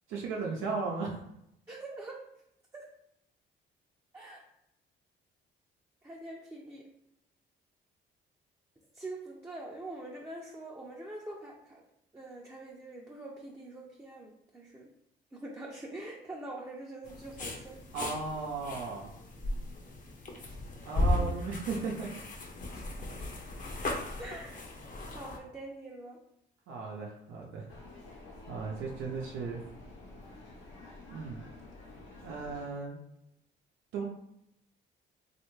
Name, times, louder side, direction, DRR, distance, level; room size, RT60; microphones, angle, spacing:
voice 1, 0.1-1.2 17.9-19.1 20.9-22.1 26.7-27.7 28.5-29.6 31.1-31.4 32.2-33.0 33.9-34.0, right 4 dB, 85° right, -2 dB, 0.6 m, -36 dB
voice 2, 1.7-2.2 2.7-2.9 4.1-4.4 6.0-6.9 8.9-11.8 12.1-14.9 15.3-17.8 21.1-21.4 22.7-22.9 24.2-24.6 25.1-26.2, right 2 dB, 15° right, -3 dB, 0.5 m, -44 dB
sound 1, 17.0-25.4, left 1 dB, 40° left, 0.7 m, -36 dB
sound 2, 27.7-32.7, left 2 dB, 75° left, 1.0 m, -50 dB
3.2 x 2.4 x 3.1 m, 0.79 s
cardioid pair, 90°, 20 cm